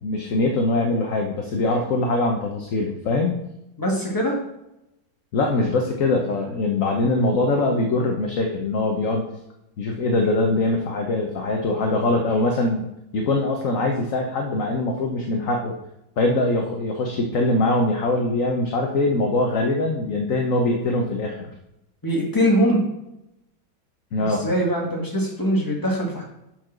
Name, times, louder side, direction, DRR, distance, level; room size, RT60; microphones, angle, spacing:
voice 1, 0.0-3.3 5.3-9.3 9.8-12.9 13.1-15.7 16.2-21.5 24.1-24.4, left 2 dB, 55° left, 1 dB, 1.0 m, -22 dB
voice 2, 3.8-4.4 22.0-22.8 24.3-26.2, equal, 10° left, -2 dB, 1.5 m, -22 dB
7.0 x 4.6 x 5.9 m, 0.88 s
omnidirectional pair, 2.2 m